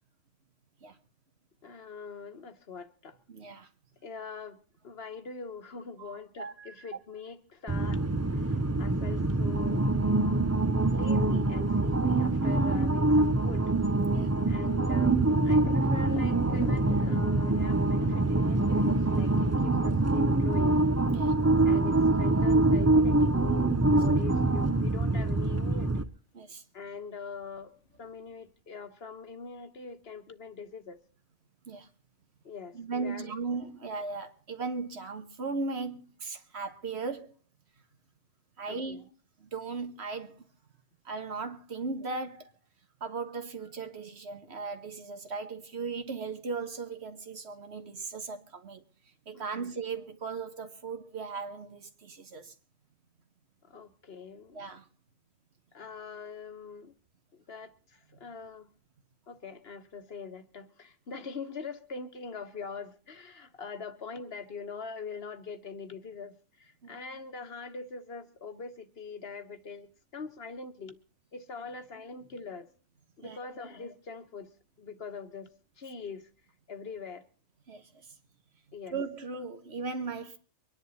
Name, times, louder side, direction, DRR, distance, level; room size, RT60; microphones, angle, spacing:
voice 1, 1.6-3.2 4.0-9.8 10.9-13.7 14.5-20.8 21.6-26.1 26.7-27.7 28.0-31.0 32.4-33.3 38.7-39.1 49.3-49.7 53.7-54.7 55.7-56.9 57.3-58.7 59.3-71.0 71.3-72.7 73.2-74.5 74.8-75.5 75.8-76.3 76.7-77.2 78.7-78.9, left 5 dB, 55° left, 1.4 m, -43 dB
voice 2, 3.3-3.7 6.0-6.9 14.1-14.3 21.1-21.4 26.3-26.6 31.7-31.9 32.7-37.3 38.6-39.1 39.4-40.4 41.0-42.5 43.0-48.8 49.3-52.5 54.5-54.8 66.8-67.0 73.2-73.4 77.7-78.2 78.9-80.4, right 4 dB, 65° right, 1.6 m, -37 dB
sound 1, 7.7-26.0, right 2 dB, 20° right, 0.5 m, -25 dB
Thunder, 15.5-23.2 26.9-27.0 27.4-28.3, left 5 dB, 80° left, 1.4 m, -45 dB
24.0 x 10.5 x 4.1 m
omnidirectional pair, 1.2 m